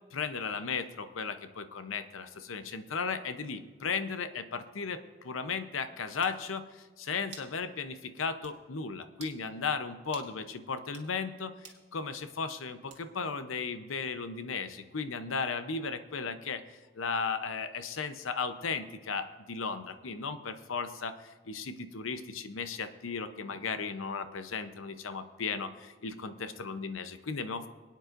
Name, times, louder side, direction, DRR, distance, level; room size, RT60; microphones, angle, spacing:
voice 1, 0.1-16.6 16.9-27.7, left 5 dB, 85° left, 10 dB, 0.7 m, -36 dB
sound 1, 6.2-6.4 7.3-7.6 7.9-8.0 8.4-8.6 9.1-9.4 10.1-10.3 10.8-11.1 11.6-11.8 12.9-13.2, right 7 dB, 60° right, 1.8 m, -50 dB
22.5 x 9.2 x 2.6 m, 1.3 s
head